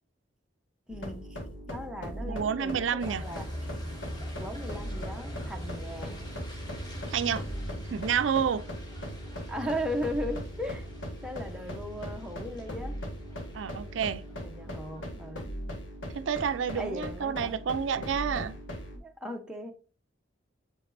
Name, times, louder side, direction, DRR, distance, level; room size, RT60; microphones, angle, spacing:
sound 1, 0.9-19.0, equal, 85° left, 1.5 m, -40 dB
voice 1, 0.9-1.4 1.7-3.5 4.4-6.2 9.5-10.9 11.2-13.0 14.4-15.5 16.8-17.6 19.0-19.7, equal, 5° right, 0.8 m, -37 dB
voice 2, 2.2-3.2 7.1-7.4 7.9-8.6 13.5-14.2 16.1-18.6, right 7 dB, 85° right, 0.4 m, -29 dB
Truck, 3.0-15.3, equal, 25° left, 1.4 m, -43 dB
7.2 x 5.2 x 2.6 m
head